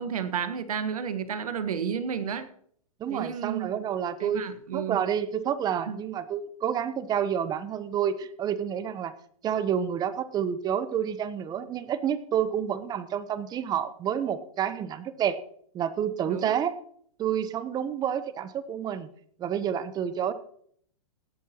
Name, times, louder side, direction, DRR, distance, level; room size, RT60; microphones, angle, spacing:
voice 1, 0.0-2.5 3.1-3.7 4.2-5.0 5.9-6.0 16.3-16.6, right 7 dB, 80° right, 10 dB, 1.5 m, -31 dB
voice 2, 3.0-4.4 4.7-9.1 9.4-15.4 15.7-16.7 17.2-19.1 19.4-20.3, right 9 dB, 20° right, 14 dB, 0.9 m, -29 dB
17.5 x 11.5 x 3.0 m, 0.63 s
hypercardioid pair, 130°, 19 cm